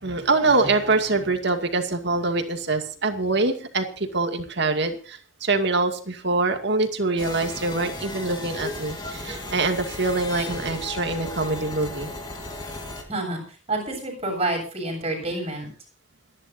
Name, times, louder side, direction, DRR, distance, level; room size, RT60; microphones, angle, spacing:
voice 1, 0.0-12.1, right 3 dB, 60° right, 6 dB, 2.4 m, -24 dB
sound 1, 7.2-13.0, left 2 dB, 20° left, 3.5 m, -35 dB
voice 2, 13.1-13.4 13.7-15.7, right 2 dB, 30° right, 2 dB, 7.6 m, -28 dB
28.5 x 11.0 x 2.7 m, 0.39 s
head